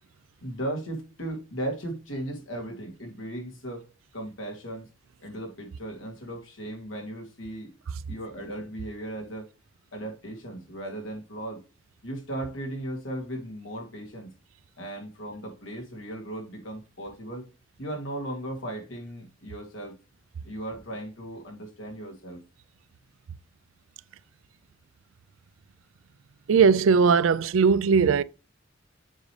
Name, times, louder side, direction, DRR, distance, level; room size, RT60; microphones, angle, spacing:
voice 1, 0.4-3.9 4.1-4.9 5.2-7.7 8.1-9.5 9.9-11.6 12.0-14.3 14.8-17.4 17.8-20.0 20.4-22.4, right 1 dB, 80° left, 2.6 m, -36 dB
voice 2, 26.5-28.2, right 5 dB, 90° right, 0.4 m, -19 dB
7.5 x 5.1 x 3.2 m
head